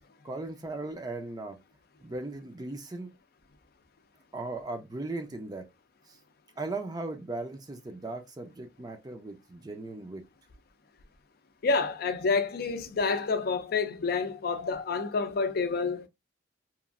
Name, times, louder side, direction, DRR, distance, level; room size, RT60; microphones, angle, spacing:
voice 1, 0.2-1.6 2.0-3.1 4.3-5.6 6.1-6.2 6.6-10.2, right 2 dB, 20° right, 0.5 m, -37 dB
voice 2, 11.6-16.1, left 4 dB, 55° left, 0.5 m, -28 dB
3.0 x 2.4 x 2.4 m
head